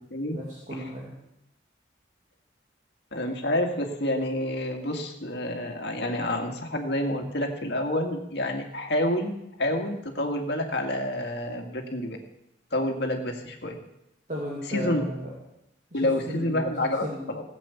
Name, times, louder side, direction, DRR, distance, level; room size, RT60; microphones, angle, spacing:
voice 1, 0.3-1.2 14.3-15.4 15.9-17.4, equal, 40° right, -4 dB, 2.5 m, -35 dB
voice 2, 3.1-12.2 12.7-13.8 14.7-15.0 15.9-17.4, left 1 dB, 60° left, 3 dB, 2.1 m, -28 dB
16.5 x 8.3 x 7.1 m, 0.83 s
head